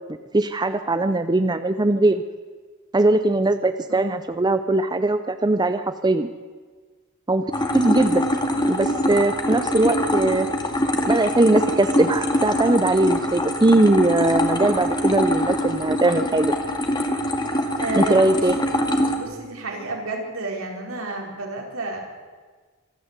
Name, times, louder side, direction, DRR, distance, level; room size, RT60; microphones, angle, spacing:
voice 1, 0.3-2.2 2.9-6.3 7.3-8.3 8.7-10.5 11.1-16.5 18.0-18.6, right 2 dB, 20° right, 10 dB, 0.7 m, -20 dB
Water Fountain, 7.5-19.2, left 1 dB, 20° left, 2.1 m, -24 dB
voice 2, 17.8-18.4 19.1-22.0, right 2 dB, 75° right, 1 dB, 4.4 m, -31 dB
26.0 x 12.5 x 8.2 m, 1.5 s
head